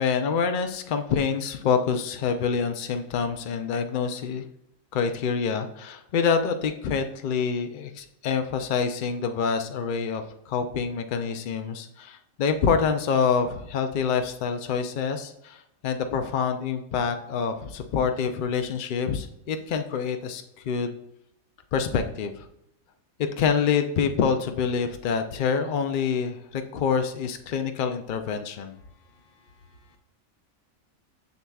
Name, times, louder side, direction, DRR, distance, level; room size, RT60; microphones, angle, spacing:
voice 1, 0.0-4.4 4.9-21.0 21.7-22.5 23.4-28.8, left 6 dB, 80° left, 7 dB, 0.4 m, -26 dB
voice 2, 29.1-30.0, left 2 dB, 50° left, 5 dB, 0.9 m, -58 dB
7.0 x 6.5 x 2.3 m, 0.76 s
omnidirectional pair, 1.4 m